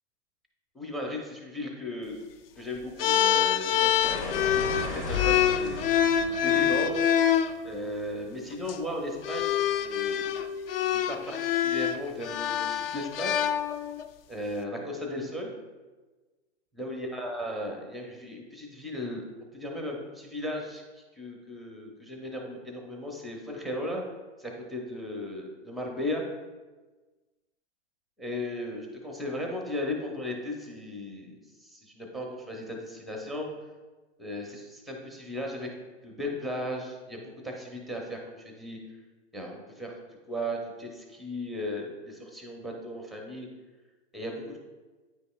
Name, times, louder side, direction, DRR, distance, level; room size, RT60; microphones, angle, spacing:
voice 1, 0.7-2.2 2.6-5.9 6.4-7.0 7.6-10.5 10.8-13.3 14.3-15.5 16.7-19.2 19.5-24.0 24.4-26.2 28.2-33.5 34.2-35.7 36.0-38.8 39.3-39.9 40.3-43.5 44.1-44.6, left 1 dB, ahead, 1 dB, 0.5 m, -36 dB
sound 1, 3.0-7.5 8.5-8.7 9.2-14.1, left 10 dB, 55° left, 0.5 m, -26 dB
sound 2, 4.0-8.8, left 1 dB, 85° left, 2.0 m, -38 dB
9.3 x 5.2 x 2.3 m, 1.3 s
hypercardioid pair, 135°, 35 cm